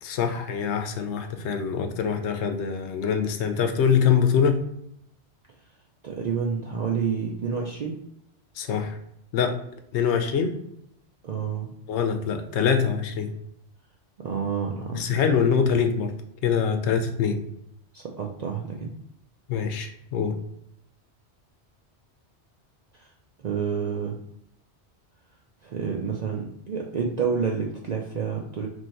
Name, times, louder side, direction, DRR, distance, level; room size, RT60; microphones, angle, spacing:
voice 1, 0.0-4.6 8.6-9.0 9.3-9.6 9.9-10.5 11.9-13.3 14.9-16.1 16.4-17.4 19.5-20.4, left 7 dB, 75° left, 6 dB, 0.8 m, -24 dB
voice 2, 6.0-8.0 11.2-11.7 14.2-15.2 17.9-18.9 22.9-23.1 23.4-24.1 25.6-28.7, right 6 dB, 60° right, 0 dB, 0.4 m, -29 dB
3.0 x 2.6 x 4.3 m, 0.75 s
omnidirectional pair, 1.2 m